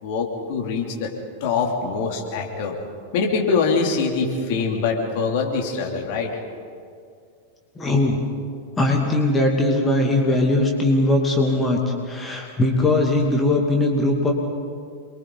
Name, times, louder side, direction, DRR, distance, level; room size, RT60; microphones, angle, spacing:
voice 1, 0.0-1.1 1.4-2.8 3.1-6.3, left 4 dB, 50° left, 0 dB, 3.2 m, -23 dB
voice 2, 7.8-8.2 8.8-11.8 12.1-14.3, left 2 dB, 15° left, 0 dB, 2.6 m, -20 dB
28.5 x 23.0 x 4.1 m, 2.2 s
figure-of-eight pair, 90°, 0 cm